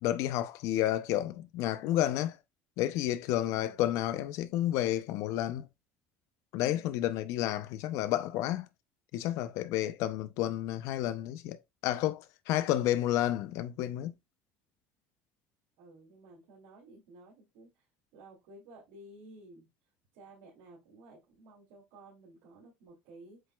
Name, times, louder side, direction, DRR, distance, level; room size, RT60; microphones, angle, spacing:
voice 1, 0.0-2.4 2.8-5.7 6.5-8.7 9.1-14.1, left 13 dB, 70° left, 0.6 m, -31 dB
voice 2, 3.4-3.9 6.6-7.1 15.8-17.8 18.1-19.7 20.1-23.4, right 2 dB, 85° right, 2.6 m, -54 dB
7.6 x 3.1 x 2.3 m
cardioid pair, 125°, 5 cm